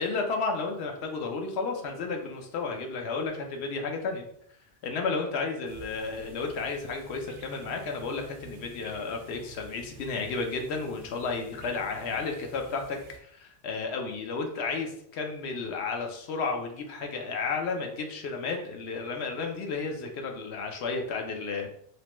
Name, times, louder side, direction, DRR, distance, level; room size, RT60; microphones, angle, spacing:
voice 1, 0.0-4.3 4.8-21.7, left 4 dB, 75° left, 3 dB, 0.8 m, -32 dB
sound 1, 5.6-13.2, right 4 dB, 70° right, 0.8 m, -49 dB
3.0 x 2.1 x 2.9 m, 0.67 s
omnidirectional pair, 1.2 m